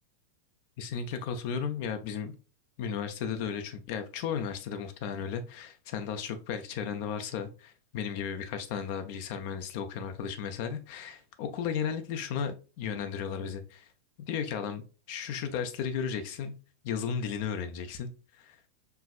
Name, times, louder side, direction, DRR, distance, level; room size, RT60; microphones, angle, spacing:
voice 1, 0.8-2.3 2.8-13.9 14.3-16.5 16.8-18.6, left 7 dB, 50° left, 0.5 m, -35 dB
4.5 x 3.1 x 2.4 m
figure-of-eight pair, 90°, 0 cm